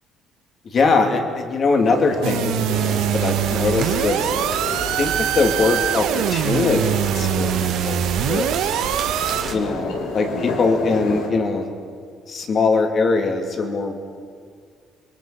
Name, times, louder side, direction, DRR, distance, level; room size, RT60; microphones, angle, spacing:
voice 1, 0.6-4.3 5.0-8.7 9.5-11.7 12.3-14.0, left 3 dB, 35° left, 4 dB, 2.7 m, -22 dB
sound 1, 1.8-11.3, left 3 dB, 90° left, 5.1 m, -31 dB
sound 2, 2.2-9.4, right 11 dB, 85° right, 1.2 m, -23 dB
sound 3, 2.7-9.5, right 6 dB, 45° right, 2.9 m, -32 dB
30.0 x 23.0 x 5.9 m, 2.1 s
cardioid pair, 160°, 0 cm